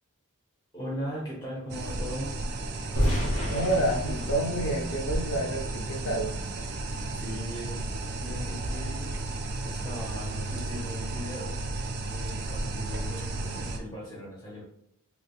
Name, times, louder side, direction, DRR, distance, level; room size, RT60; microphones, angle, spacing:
voice 1, 0.7-2.4 7.1-9.2 9.6-11.6 12.1-14.7, equal, 20° left, -6 dB, 0.8 m, -39 dB
sound 1, 1.7-13.8, right 2 dB, 50° right, 0.4 m, -33 dB
sound 2, 3.0-5.9, equal, 90° left, 0.9 m, -30 dB
voice 2, 3.4-6.3, right 1 dB, 60° left, 3 dB, 0.6 m, -29 dB
3.4 x 2.9 x 2.3 m, 0.71 s
head